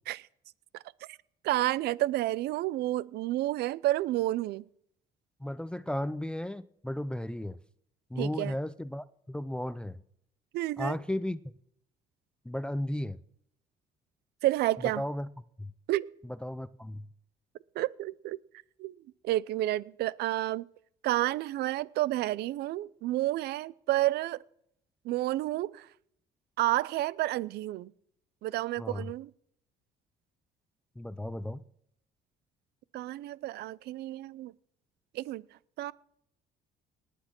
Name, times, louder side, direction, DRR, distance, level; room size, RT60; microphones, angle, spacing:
voice 1, 1.4-4.6 8.2-8.5 10.5-11.0 14.4-15.0 15.9-16.1 17.8-18.4 18.8-19.0 19.2-20.6 21.0-24.4 25.0-25.9 26.6-27.9 28.4-29.3 32.9-34.5 35.1-35.4 35.8-35.9, right 16 dB, 75° right, 0.6 m, -30 dB
voice 2, 5.4-7.6 8.1-10.0 10.8-11.4 12.5-13.2 15.0-15.3 15.6-15.7 16.4-17.1 28.8-29.1 31.0-31.6, left 1 dB, 5° left, 0.5 m, -34 dB
19.0 x 8.3 x 6.0 m
cardioid pair, 110°, 17 cm